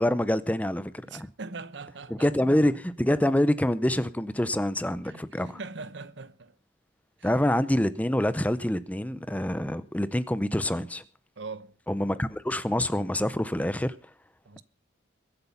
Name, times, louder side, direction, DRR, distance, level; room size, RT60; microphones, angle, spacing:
voice 1, 0.0-1.3 2.2-5.6 7.2-11.0 11.9-13.9, left 1 dB, 10° left, 0.6 m, -26 dB
voice 2, 1.0-2.3 5.0-6.5 7.2-7.3 11.4-11.8 14.4-14.6, right 4 dB, 65° right, 0.9 m, -41 dB
22.5 x 8.1 x 5.7 m
head